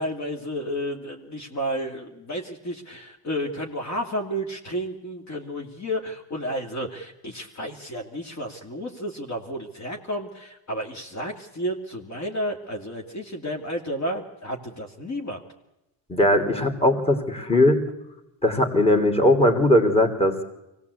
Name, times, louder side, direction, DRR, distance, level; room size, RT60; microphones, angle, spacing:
voice 1, 0.0-15.4, equal, 40° left, 2 dB, 2.7 m, -31 dB
voice 2, 16.1-17.8 18.4-20.4, left 1 dB, 15° left, 5 dB, 3.0 m, -19 dB
23.5 x 18.0 x 8.4 m, 0.93 s
supercardioid pair, 95°, 44 cm